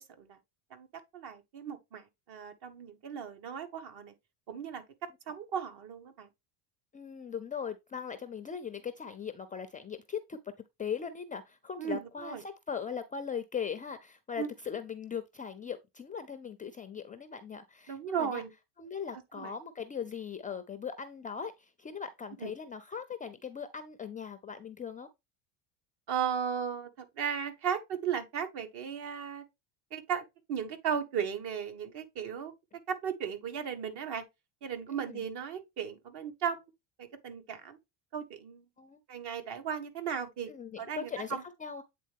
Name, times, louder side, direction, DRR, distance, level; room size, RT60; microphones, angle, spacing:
voice 1, 1.1-4.1 4.5-4.8 5.3-6.3 11.8-12.4 14.4-14.5 17.9-18.5 19.4-19.5 22.4-22.5 26.1-29.4 29.9-30.2 30.5-32.5 32.9-34.2 34.6-36.6 37.0-37.8 38.1-38.6 39.1-40.5 40.8-41.4, right 7 dB, 55° right, 1.6 m, -36 dB
voice 2, 6.9-10.4 10.8-18.4 18.8-25.1 34.9-35.2 38.8-39.0 40.5-41.8, left 7 dB, 20° left, 0.4 m, -39 dB
8.5 x 3.5 x 3.5 m
supercardioid pair, 115°, 47 cm